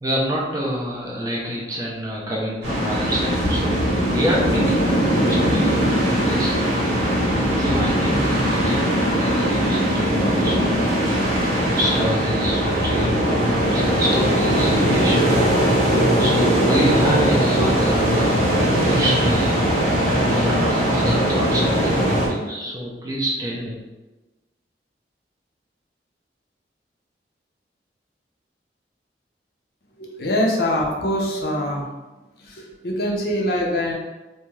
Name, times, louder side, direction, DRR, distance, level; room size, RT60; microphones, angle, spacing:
voice 1, 0.0-3.7 4.0-6.9 7.6-10.6 11.4-15.3 15.6-15.8 16.2-19.7 20.3-23.8, equal, 20° right, -3 dB, 0.5 m, -27 dB
sound 1, 2.6-22.3, equal, 85° right, 1.3 m, -20 dB
voice 2, 30.0-31.8 32.5-33.9, left 1 dB, 60° left, -1 dB, 0.5 m, -23 dB
2.6 x 2.3 x 3.1 m, 1.1 s
head